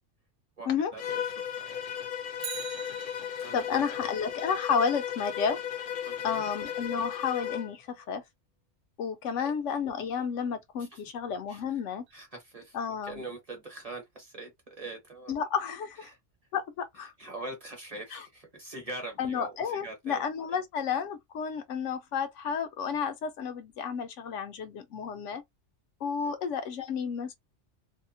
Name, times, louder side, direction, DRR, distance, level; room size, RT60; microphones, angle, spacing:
voice 1, 0.6-2.0 2.8-3.0 3.4-4.0 6.0-6.5 9.3-9.5 10.8-11.0 11.5-11.8 12.1-12.8 13.0-15.3 16.0-16.2 16.9-20.2 26.2-26.3, right 2 dB, 35° right, 0.8 m, -43 dB
Bowed string instrument, 1.0-7.7, left 9 dB, 60° left, 0.6 m, -36 dB
Bicycle, 2.3-3.7 12.1-12.2, right 8 dB, 65° right, 0.8 m, -42 dB
voice 2, 3.5-5.6 6.2-8.2 9.0-12.0 12.7-13.2 15.3-16.1 16.5-17.1 18.1-18.2 19.2-25.4 26.0-27.4, left 6 dB, 80° left, 1.0 m, -31 dB
2.8 x 2.1 x 2.6 m
omnidirectional pair, 1.3 m